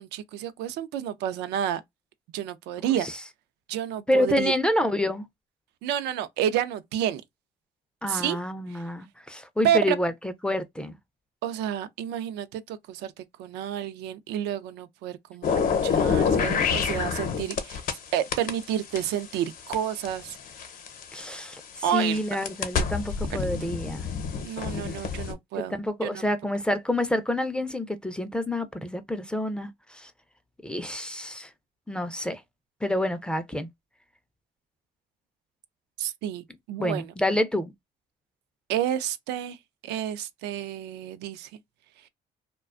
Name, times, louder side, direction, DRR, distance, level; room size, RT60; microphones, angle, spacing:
voice 1, 0.0-1.8 2.3-3.1 3.7-4.5 5.8-7.2 8.1-8.4 8.7-8.8 9.6-10.0 11.4-17.8 18.1-20.4 21.8-22.2 24.4-25.8 26.0-26.2 36.0-37.1 38.7-39.6 39.8-41.5, right 10 dB, 85° right, 0.4 m, -30 dB
voice 2, 4.1-5.3 8.0-11.0 21.1-24.1 25.8-30.1 30.6-31.5 31.9-32.4 32.8-33.7 36.8-37.7, left 1 dB, 5° left, 0.4 m, -28 dB
sound 1, 15.4-18.0 18.3-21.2 21.8-25.3, left 6 dB, 55° left, 0.7 m, -27 dB
2.4 x 2.2 x 2.3 m
cardioid pair, 110°, 17 cm